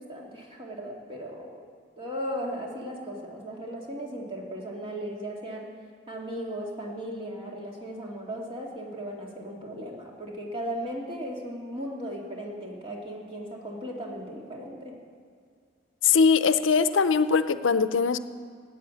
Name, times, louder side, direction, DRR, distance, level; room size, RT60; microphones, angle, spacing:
voice 1, 0.0-1.6 2.0-5.7 6.1-15.0, equal, 30° right, -2 dB, 2.4 m, -36 dB
voice 2, 16.0-18.2, left 5 dB, 85° left, 12 dB, 0.6 m, -21 dB
14.5 x 9.2 x 8.4 m, 2.1 s
head